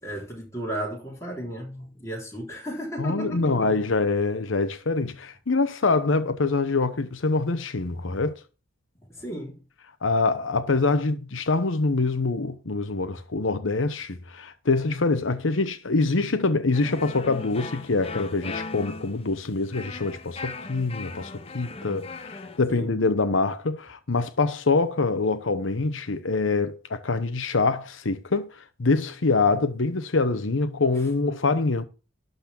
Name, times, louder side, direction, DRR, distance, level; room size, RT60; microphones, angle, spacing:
voice 1, 0.0-3.7 9.1-9.6 22.7-23.0, equal, 15° left, 3.7 m, -34 dB
voice 2, 3.0-8.4 10.0-31.8, left 3 dB, 80° left, 0.9 m, -25 dB
sound 1, 16.7-22.6, left 3 dB, 30° left, 0.9 m, -38 dB
12.0 x 4.1 x 7.1 m
head